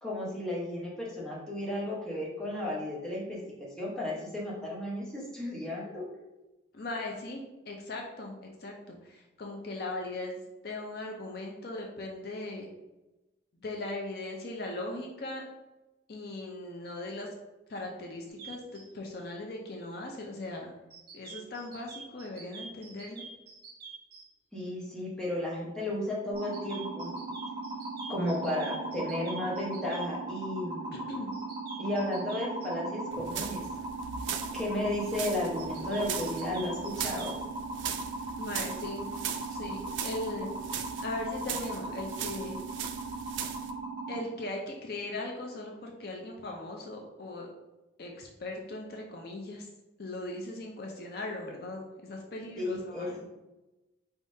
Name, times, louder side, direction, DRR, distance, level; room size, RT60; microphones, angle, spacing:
voice 1, 0.0-3.4 3.8-6.1 24.5-27.1 28.1-30.9 31.8-33.6 34.5-37.3 52.6-53.1, left 1 dB, 5° left, -6 dB, 1.0 m, -34 dB
voice 2, 6.7-7.4 7.7-12.7 13.6-15.4 16.1-17.3 17.7-20.7 21.1-23.3 31.1-31.3 38.4-39.0 39.5-40.5 41.0-42.6 44.1-47.5 48.0-49.7 50.0-53.2, left 2 dB, 55° left, 1 dB, 0.5 m, -39 dB
sound 1, 18.3-18.9 20.9-24.2 26.4-30.1 31.3-32.7 35.6-37.3, right 4 dB, 55° right, 0.9 m, -46 dB
sound 2, 26.3-44.2, right 3 dB, 20° right, 1.1 m, -38 dB
sound 3, 33.1-43.7, right 8 dB, 80° right, 0.4 m, -39 dB
4.2 x 3.6 x 2.7 m, 1.0 s
head